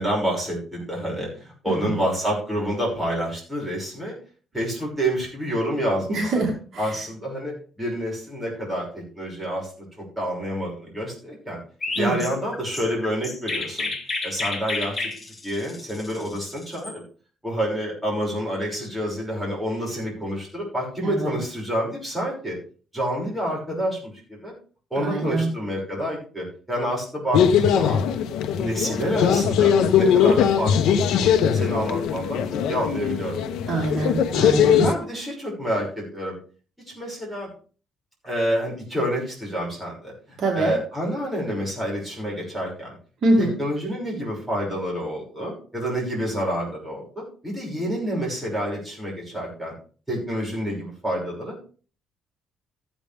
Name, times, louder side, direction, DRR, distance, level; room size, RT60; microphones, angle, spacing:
voice 1, 0.0-4.1 4.5-6.5 6.8-9.7 10.0-11.6 11.9-13.9 14.2-17.0 17.4-22.6 22.9-24.5 24.9-28.0 28.6-32.4 32.7-33.4 34.7-36.4 36.9-37.5 38.2-40.1 40.5-43.0 43.4-49.7 50.1-51.7, equal, 5° right, -4 dB, 6.1 m, -28 dB
voice 2, 1.7-2.0 6.1-7.0 12.0-12.3 21.0-21.3 25.0-25.5 33.7-34.8 40.4-40.7 43.2-43.5, right 2 dB, 50° right, 0 dB, 2.4 m, -24 dB
Chirp tweet, 11.8-16.9, left 3 dB, 20° left, 1.6 m, -31 dB
sound 1, 27.3-34.9, left 8 dB, 90° left, 0.9 m, -20 dB
14.5 x 9.1 x 3.5 m, 0.40 s
cardioid pair, 130°, 0 cm